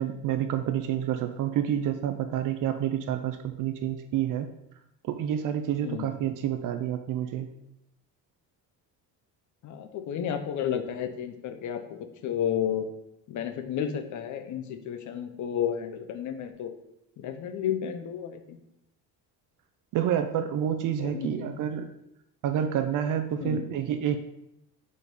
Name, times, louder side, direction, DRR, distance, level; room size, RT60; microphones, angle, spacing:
voice 1, 0.0-4.5 5.1-7.5 19.9-21.9 22.4-24.2, right 9 dB, 55° right, 8 dB, 0.5 m, -28 dB
voice 2, 5.8-6.1 9.6-12.9 13.3-16.7 17.2-18.6 21.0-21.5 23.4-23.7, left 9 dB, 50° left, 7 dB, 0.7 m, -32 dB
5.0 x 4.1 x 5.1 m, 0.85 s
cardioid pair, 150°, 38 cm